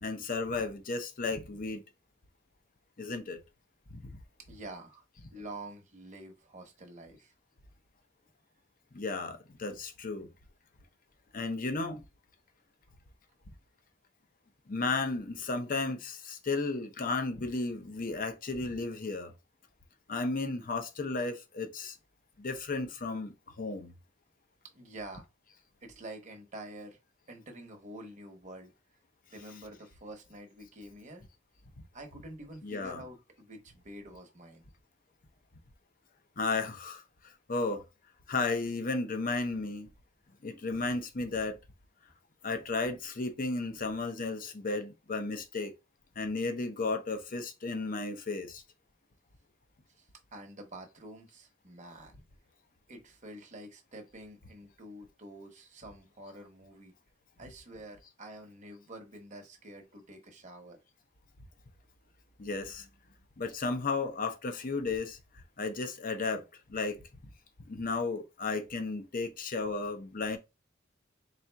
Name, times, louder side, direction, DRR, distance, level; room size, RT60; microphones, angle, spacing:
voice 1, 0.0-1.8 3.0-3.4 3.9-4.2 8.9-10.3 11.3-12.0 14.7-19.3 20.1-22.0 22.4-23.9 29.4-29.6 32.6-33.0 36.4-37.0 37.5-37.8 38.3-39.9 40.4-41.6 42.4-45.7 46.2-48.6 62.4-62.9 63.4-67.0 67.7-70.4, left 3 dB, 45° left, 0.7 m, -34 dB
voice 2, 4.5-5.0 5.3-7.3 24.7-25.3 25.8-27.0 27.3-28.7 29.3-31.3 31.9-34.7 50.0-52.2 52.9-56.9 57.4-60.8, right 1 dB, 40° right, 0.9 m, -47 dB
4.2 x 3.6 x 2.2 m
head